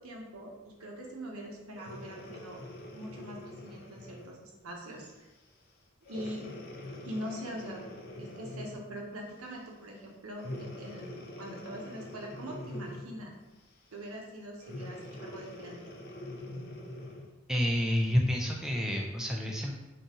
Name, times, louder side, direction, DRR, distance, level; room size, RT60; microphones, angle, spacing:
voice 1, 0.0-2.6 2.9-5.3 6.1-6.5 7.0-7.8 8.2-13.4 13.9-15.8, equal, 85° right, 0 dB, 0.9 m, -43 dB
Breathing, 1.7-4.4 5.0-5.2 6.0-8.9 10.4-13.2 14.6-17.3 18.0-18.1, left 1 dB, 45° left, 0.6 m, -44 dB
voice 2, 17.5-19.7, equal, ahead, -1 dB, 0.3 m, -29 dB
3.9 x 2.7 x 3.6 m, 1.1 s
head